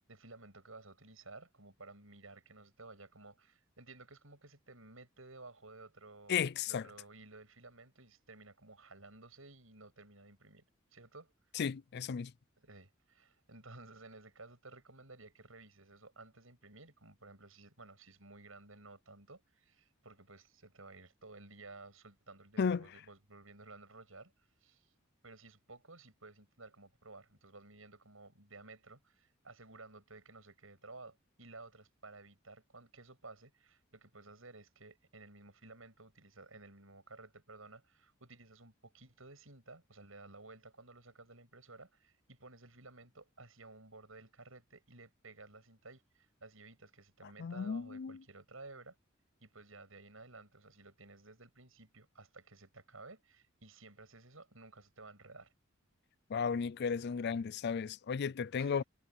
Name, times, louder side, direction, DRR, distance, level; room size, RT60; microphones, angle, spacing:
voice 1, 0.1-10.6 10.9-11.3 12.6-24.3 24.6-24.9 25.2-49.0 49.4-55.5 58.6-58.9, right 3 dB, 80° right, 7.7 m, -55 dB
voice 2, 6.3-6.8 11.5-12.3 22.6-22.9 47.4-48.2 56.3-58.8, left 6 dB, 55° left, 0.4 m, -34 dB
head